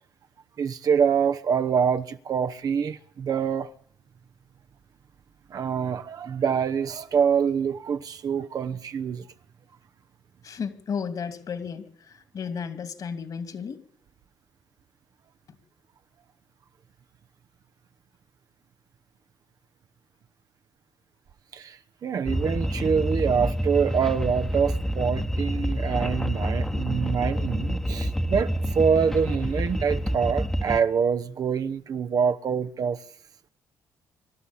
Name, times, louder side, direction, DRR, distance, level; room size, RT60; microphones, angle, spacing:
voice 1, 0.6-3.7 5.5-9.2 21.5-33.0, right 6 dB, 55° right, 1.0 m, -25 dB
voice 2, 10.4-13.8, left 6 dB, 55° left, 2.6 m, -33 dB
sound 1, 22.3-30.8, equal, 5° left, 1.3 m, -28 dB
24.5 x 12.5 x 8.6 m
cardioid pair, 85°, 8 cm